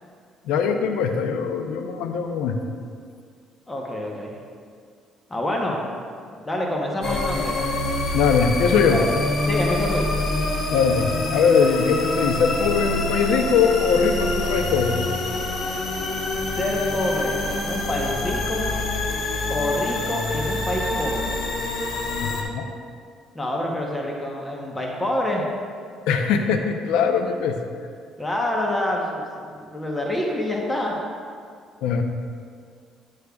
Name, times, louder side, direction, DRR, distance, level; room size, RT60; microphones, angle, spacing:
voice 1, 0.4-2.6 8.1-9.0 10.7-15.0 22.2-22.7 26.1-27.6 31.8-32.0, left 6 dB, 90° left, 6 dB, 0.5 m, -21 dB
voice 2, 3.7-4.3 5.3-5.8 6.5-7.6 8.9-9.0 9.4-10.1 16.6-18.7 19.5-21.3 23.3-25.5 28.2-31.0, left 1 dB, 15° left, -1 dB, 0.9 m, -27 dB
sound 1, 7.0-22.4, left 2 dB, 50° left, 1.1 m, -26 dB
9.7 x 6.4 x 2.3 m, 2.1 s
cardioid pair, 115°, 0 cm